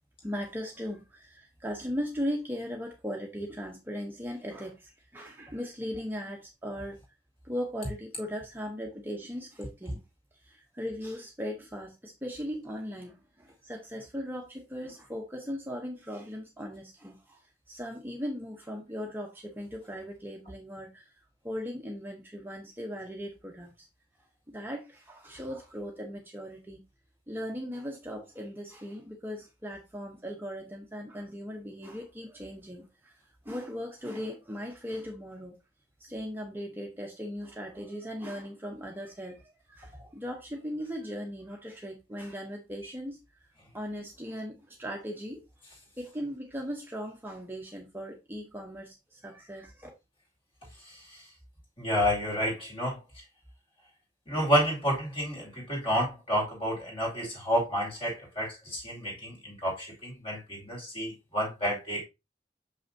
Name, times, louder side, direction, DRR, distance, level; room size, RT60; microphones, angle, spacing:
voice 1, 0.2-7.0 7.4-10.0 10.3-21.1 21.4-23.9 24.5-26.8 27.3-35.5 36.0-43.4 43.7-45.4 46.0-49.9, equal, 10° right, 0.8 m, -38 dB
voice 2, 50.8-51.3 51.8-53.0 54.3-62.0, equal, 30° left, 2.5 m, -30 dB
6.4 x 5.6 x 2.7 m
head